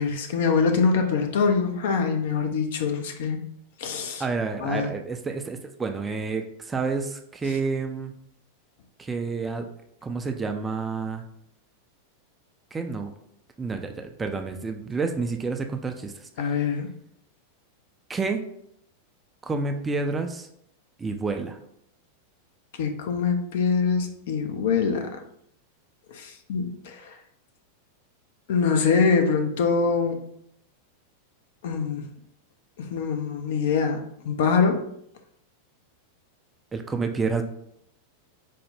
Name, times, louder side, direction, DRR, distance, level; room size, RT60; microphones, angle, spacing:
voice 1, 0.0-3.4 3.8-4.2 4.6-4.9 16.4-16.9 22.8-25.2 26.1-27.0 28.5-30.2 31.6-32.0 32.9-34.8, left 5 dB, 55° left, 5 dB, 0.5 m, -24 dB
voice 2, 4.2-8.1 9.0-9.7 10.0-11.2 12.7-13.1 13.6-16.1 16.4-16.6 18.1-18.4 19.4-20.5 21.0-21.6 36.7-37.4, right 4 dB, 15° right, 5 dB, 0.3 m, -29 dB
4.3 x 2.0 x 3.2 m, 0.73 s
figure-of-eight pair, 90°, 0 cm